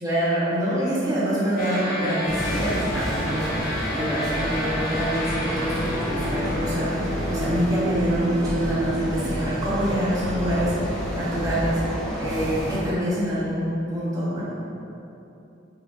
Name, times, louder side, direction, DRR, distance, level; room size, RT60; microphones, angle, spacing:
voice 1, 0.0-14.6, equal, 20° right, -10 dB, 1.5 m, -26 dB
sound 1, 1.6-9.1, equal, 50° left, 1.5 m, -30 dB
sound 2, 2.3-12.8, equal, ahead, 1.6 m, -30 dB
5.6 x 5.4 x 5.1 m, 2.9 s
head